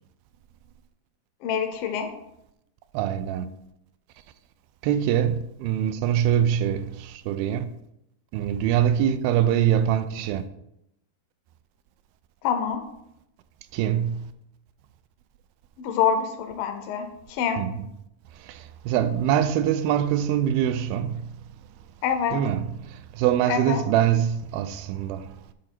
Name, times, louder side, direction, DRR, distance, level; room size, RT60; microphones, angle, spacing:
voice 1, 1.4-2.1 12.4-12.8 15.8-17.6 22.0-22.4 23.5-23.8, left 7 dB, 80° left, 2.3 m, -26 dB
voice 2, 2.9-3.5 4.8-7.7 8.3-10.4 13.7-14.3 17.6-17.9 18.5-21.2 22.3-25.3, right 10 dB, 85° right, 2.3 m, -24 dB
11.0 x 3.9 x 4.4 m
omnidirectional pair, 4.3 m